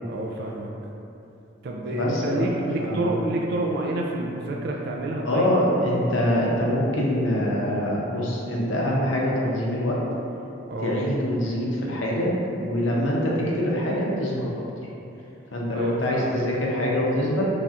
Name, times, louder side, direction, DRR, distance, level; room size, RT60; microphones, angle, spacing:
voice 1, 0.1-0.7 1.6-5.5 10.7-11.0 15.7-16.4, right 2 dB, 55° right, -1 dB, 0.3 m, -28 dB
voice 2, 1.9-2.5 2.8-3.2 5.2-10.0 10.8-12.3 12.6-14.6 15.5-17.5, left 1 dB, 80° left, -4 dB, 0.7 m, -24 dB
4.1 x 3.4 x 2.4 m, 2.8 s
head